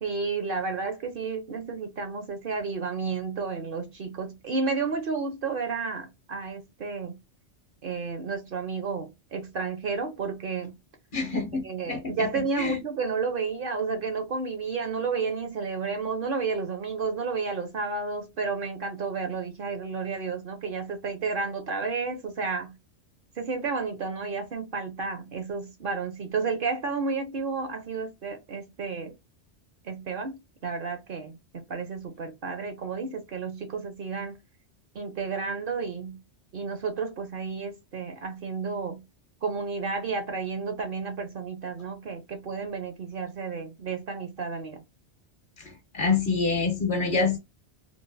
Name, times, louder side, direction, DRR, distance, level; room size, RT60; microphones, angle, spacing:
voice 1, 0.0-7.2 7.8-10.7 11.6-22.7 23.4-29.1 29.8-34.4 34.9-36.2 36.5-39.0 39.4-44.8, right 4 dB, 55° right, 0.8 m, -31 dB
voice 2, 11.1-12.3 12.6-12.8 45.6-47.4, left 4 dB, 50° left, 0.8 m, -27 dB
3.1 x 2.4 x 2.5 m
omnidirectional pair, 1.2 m